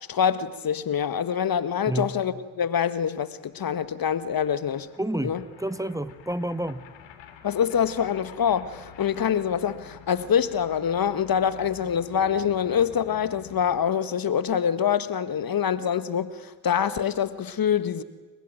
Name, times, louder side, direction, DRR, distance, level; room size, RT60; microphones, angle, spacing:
voice 1, 0.1-4.9 5.2-5.4 7.4-18.0, left 8 dB, 45° left, 1.7 m, -25 dB
sound 1, 3.0-13.9, left 8 dB, 70° left, 3.0 m, -49 dB
voice 2, 5.0-6.9, right 1 dB, 5° right, 1.5 m, -29 dB
29.0 x 22.5 x 9.0 m
hypercardioid pair, 45°, 47 cm